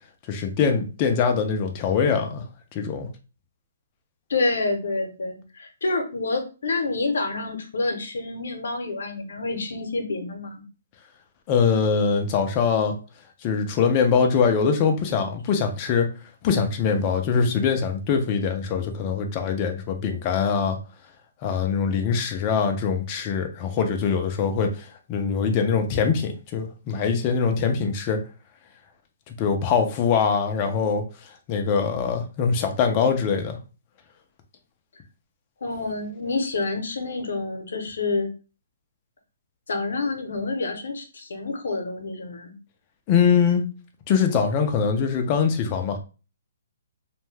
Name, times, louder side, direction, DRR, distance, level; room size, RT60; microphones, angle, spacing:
voice 1, 0.3-2.5 2.7-3.1 11.5-13.0 13.4-16.1 16.4-20.8 21.4-28.2 29.3-31.0 31.5-33.6 43.1-43.6 44.1-46.0, left 6 dB, 25° left, 5 dB, 0.5 m, -23 dB
voice 2, 4.3-10.6 35.6-38.3 39.7-42.5, left 3 dB, 75° left, 5 dB, 0.8 m, -28 dB
2.6 x 2.2 x 3.2 m, 0.33 s
hypercardioid pair, 165°, 0 cm